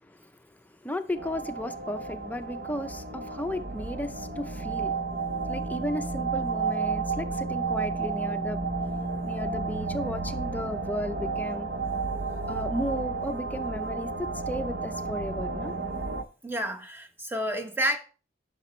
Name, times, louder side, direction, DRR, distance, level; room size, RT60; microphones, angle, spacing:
voice 1, 0.0-5.0 5.5-8.7 9.2-11.7 12.5-15.7, left 1 dB, 10° left, 0.5 m, -34 dB
sound 1, 1.2-16.2, right 4 dB, 60° right, 0.7 m, -32 dB
voice 2, 16.4-18.0, equal, 10° right, 0.9 m, -29 dB
10.5 x 5.9 x 3.1 m
head